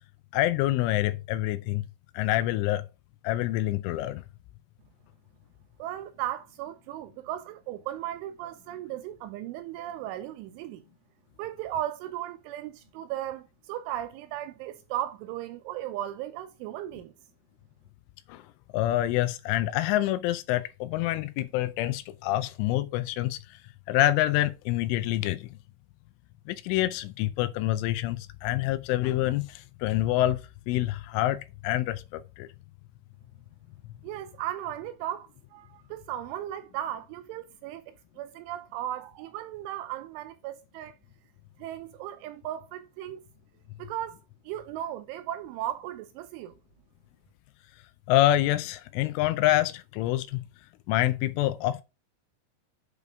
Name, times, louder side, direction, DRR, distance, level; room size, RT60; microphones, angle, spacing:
voice 1, 0.3-1.8 2.1-2.8 3.2-4.2 18.3-18.4 18.7-23.6 23.9-25.5 26.5-30.4 30.7-31.4 31.6-32.5 48.1-50.4 50.9-51.8, left 14 dB, 80° left, 3.0 m, -26 dB
voice 2, 5.8-10.8 11.4-17.1 34.0-37.8 38.2-40.9 41.6-43.2 43.8-44.2 44.5-46.5, right 12 dB, 85° right, 2.8 m, -36 dB
8.2 x 5.1 x 5.0 m
omnidirectional pair, 5.9 m